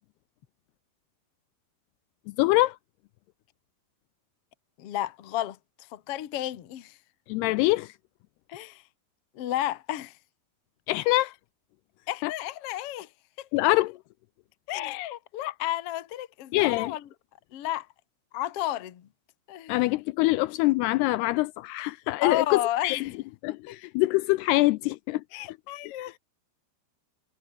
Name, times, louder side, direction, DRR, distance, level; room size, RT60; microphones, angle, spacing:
voice 1, 2.3-2.8 7.3-7.9 10.9-11.3 12.2-12.3 13.5-14.0 16.5-16.9 19.7-23.1 23.4-25.2 25.9-26.0, left 20 dB, 85° left, 2.4 m, -24 dB
voice 2, 4.8-7.0 8.5-8.8 9.3-10.2 11.1-11.2 12.1-13.1 13.4-13.5 14.7-17.1 17.5-17.9 18.3-19.1 19.5-19.8 22.2-23.2 25.3-26.2, left 13 dB, 65° left, 1.5 m, -32 dB
omnidirectional pair, 5.0 m